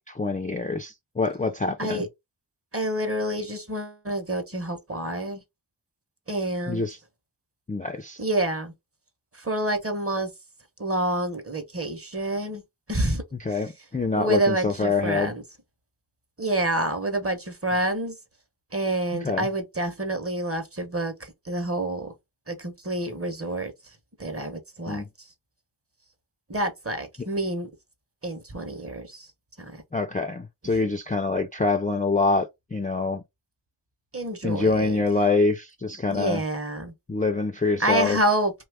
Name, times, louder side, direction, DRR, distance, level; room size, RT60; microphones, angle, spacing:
voice 1, 0.0-2.1 6.7-7.0 7.7-8.2 13.3-15.3 19.2-19.5 24.9-25.1 29.9-33.2 34.4-36.4 37.1-38.2, left 3 dB, 20° left, 0.3 m, -25 dB
voice 2, 2.7-5.4 6.3-6.8 8.2-8.7 9.4-10.3 10.8-12.6 12.9-13.2 13.5-13.6 14.1-15.4 16.4-18.1 18.7-22.1 22.5-23.7 24.2-25.0 26.5-27.7 28.2-29.3 34.1-35.0 36.1-36.9 37.8-38.5, right 1 dB, 30° right, 0.7 m, -28 dB
2.8 x 2.3 x 3.3 m
wide cardioid pair, 50°, 48 cm